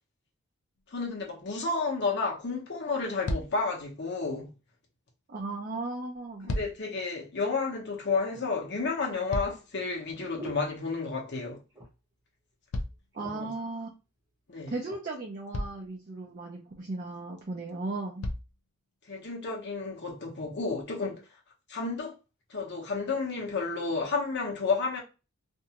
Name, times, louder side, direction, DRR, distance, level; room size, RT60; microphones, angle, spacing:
sound 1, 0.8-1.0 2.4-2.5 2.8-3.0 3.2-3.7 6.1-7.0 8.8-9.9 12.7-13.7 14.9-15.0 15.5-16.0 17.4-17.5 18.2-18.6 19.4-19.5, left 1 dB, 75° left, 0.5 m, -35 dB
voice 1, 0.9-4.5 6.4-11.6 13.2-13.5 14.5-14.7 19.1-21.2 21.7-22.1 22.5-25.0, left 4 dB, 55° left, 1.0 m, -31 dB
voice 2, 5.3-6.5 13.1-13.9 14.7-18.2, right 2 dB, 40° right, 0.5 m, -36 dB
sound 2, 8.3-11.4 11.7-12.2 12.5-12.6 12.9-13.6 14.3-15.1 15.7-15.9, right 1 dB, 15° right, 0.9 m, -49 dB
2.6 x 2.3 x 2.9 m
head